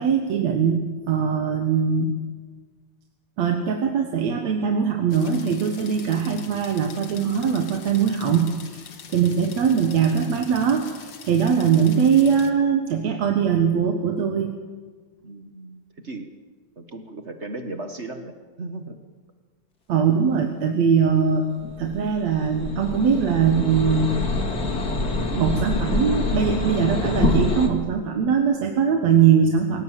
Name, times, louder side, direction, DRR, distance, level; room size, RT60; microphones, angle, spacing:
voice 1, 0.0-2.1 3.4-8.8 9.1-14.6 19.9-21.5 21.8-24.2 25.3-29.8, right 7 dB, 65° right, 4 dB, 2.6 m, -21 dB
sound 1, 5.1-12.5, left 7 dB, 50° left, 2.2 m, -44 dB
voice 2, 15.2-16.3 16.8-19.0, right 2 dB, 45° right, 6 dB, 0.9 m, -36 dB
sound 2, 21.6-27.7, left 3 dB, 35° left, 2.6 m, -26 dB
27.5 x 17.5 x 7.5 m, 1.5 s
omnidirectional pair, 3.4 m